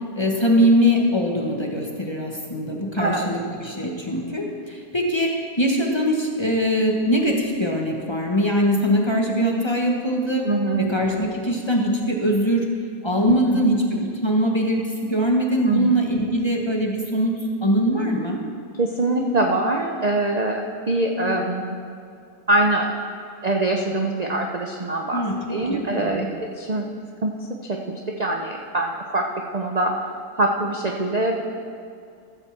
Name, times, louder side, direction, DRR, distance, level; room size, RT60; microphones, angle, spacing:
voice 1, 0.2-5.3 5.6-10.4 10.8-12.6 13.0-17.3 17.6-18.4 25.1-26.3, equal, 20° left, 0 dB, 1.0 m, -22 dB
voice 2, 3.0-3.3 10.4-10.9 13.2-13.7 15.6-15.9 18.8-21.8 22.5-22.9 23.4-26.9 27.2-30.0 30.4-31.4, right 2 dB, 45° right, 1 dB, 0.5 m, -24 dB
14.5 x 5.4 x 7.2 m, 2.3 s
omnidirectional pair, 1.6 m